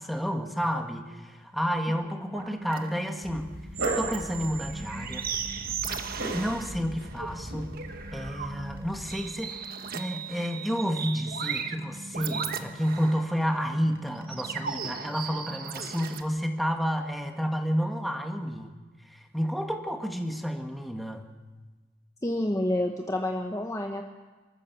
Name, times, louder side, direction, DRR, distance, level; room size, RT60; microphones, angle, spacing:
voice 1, 0.0-3.5 4.0-5.3 6.3-7.8 8.1-9.6 9.9-18.7 19.1-21.2, equal, ahead, 3 dB, 1.8 m, -30 dB
sound 1, 2.0-16.2, right 6 dB, 50° right, 1.3 m, -37 dB
Dog, 3.2-9.1, right 2 dB, 85° right, 7.2 m, -37 dB
voice 2, 22.2-24.0, left 1 dB, 15° left, 2 dB, 1.2 m, -28 dB
28.0 x 14.0 x 7.0 m, 1.3 s
head